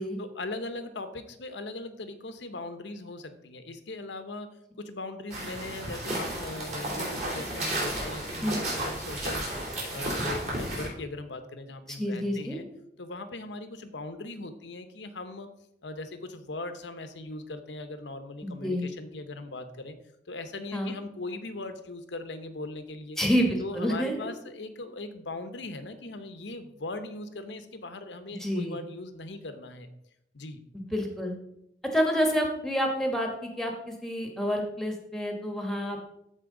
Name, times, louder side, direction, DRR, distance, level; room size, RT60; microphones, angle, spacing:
voice 1, 0.2-4.5 4.8-12.7 13.0-15.5 15.8-20.0 20.3-23.2 23.6-29.9 30.3-30.6, left 2 dB, 80° left, 9 dB, 0.9 m, -39 dB
sound 1, 5.3-10.9, right 1 dB, 40° right, 3.0 m, -33 dB
voice 2, 12.0-12.6 18.4-18.8 20.7-20.9 23.2-24.3 28.4-28.8 30.9-31.3 31.9-36.0, equal, ahead, 2 dB, 1.2 m, -28 dB
13.0 x 4.4 x 3.8 m, 0.79 s
head